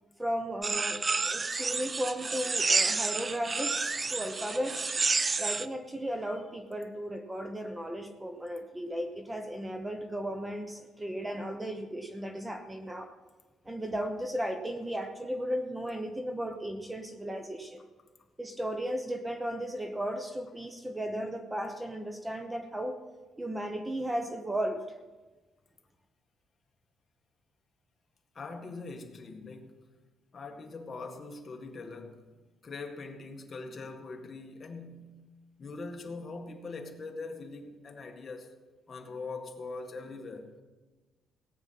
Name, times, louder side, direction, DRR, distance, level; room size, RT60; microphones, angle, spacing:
voice 1, 0.2-4.9 5.4-13.1 13.7-17.8 18.4-23.0 23.4-24.9, equal, 10° right, 1.0 m, -35 dB
sound 1, 0.6-5.7, right 4 dB, 25° right, 0.5 m, -30 dB
voice 2, 28.4-29.8 30.3-32.3 32.6-35.2 35.6-38.5 38.9-40.5, left 3 dB, 35° left, 1.8 m, -42 dB
17.5 x 9.0 x 5.8 m
cardioid pair, 120°, 0 cm